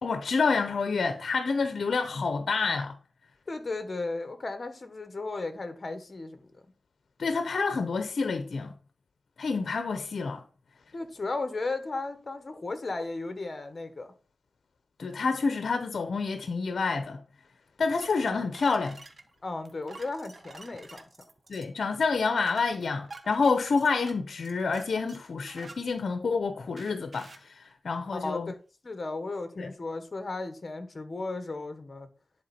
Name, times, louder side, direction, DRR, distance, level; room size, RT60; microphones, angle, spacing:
voice 1, 0.0-3.0 7.2-8.7 9.4-10.4 15.0-17.2 17.8-19.0 21.5-28.5 29.6-29.7, left 4 dB, 75° left, 0.7 m, -28 dB
voice 2, 3.5-6.7 10.9-14.1 19.4-21.1 28.1-28.6 28.8-32.1, left 3 dB, 45° left, 1.4 m, -35 dB
sound 1, 18.0-26.3 26.8-27.5, right 3 dB, 50° right, 1.3 m, -49 dB
10.5 x 4.5 x 4.3 m
wide cardioid pair, 85°, 0 cm